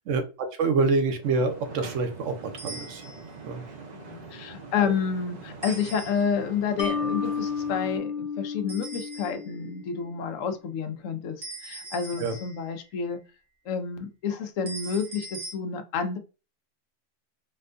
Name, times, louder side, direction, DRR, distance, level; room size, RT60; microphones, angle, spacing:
voice 1, 0.0-3.0 3.4-3.6 4.8-4.9 12.2-12.4, right 4 dB, 75° right, 6 dB, 1.0 m, -26 dB
sound 1, 1.2-8.0, right 4 dB, 45° right, 0.6 m, -44 dB
sound 2, 2.6-3.4 5.6-6.5 8.7-9.6 11.4-12.8 14.7-15.5, right 3 dB, 90° right, 1.4 m, -41 dB
voice 2, 3.9-11.4 11.6-13.2 13.7-16.2, left 6 dB, 80° left, 8 dB, 1.0 m, -29 dB
Mallet percussion, 6.8-10.1, left 5 dB, 45° left, 0.9 m, -32 dB
4.4 x 2.2 x 2.5 m, 0.32 s
omnidirectional pair, 1.3 m